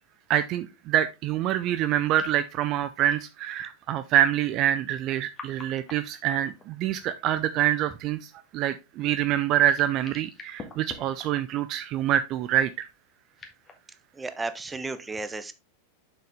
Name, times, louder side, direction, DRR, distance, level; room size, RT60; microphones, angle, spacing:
voice 1, 0.3-12.9, right 11 dB, 35° right, 0.5 m, -26 dB
sound 1, 2.1-2.6 3.0-3.2 4.9-7.0 9.0-11.6 12.8-13.8, left 4 dB, 20° left, 1.7 m, -46 dB
voice 2, 14.2-15.5, right 3 dB, 10° right, 0.8 m, -33 dB
7.0 x 6.1 x 3.5 m
figure-of-eight pair, 90°, 0 cm